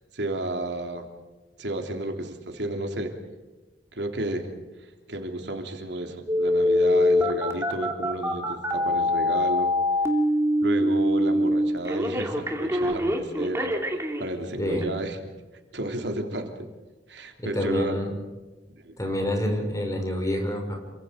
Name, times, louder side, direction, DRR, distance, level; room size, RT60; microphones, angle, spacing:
voice 1, 0.1-1.1 1.6-3.1 3.9-4.5 5.1-9.7 10.6-13.7 14.2-15.2 15.7-16.7 17.1-18.0 18.8-18.9, right 1 dB, 80° right, 4 dB, 3.2 m, -32 dB
Telephone, 6.3-14.3 14.8-14.9, left 1 dB, 15° right, 2.9 m, -23 dB
voice 2, 17.4-18.1 19.0-20.7, equal, 20° left, 2 dB, 6.1 m, -27 dB
28.5 x 24.5 x 5.2 m, 1.2 s
head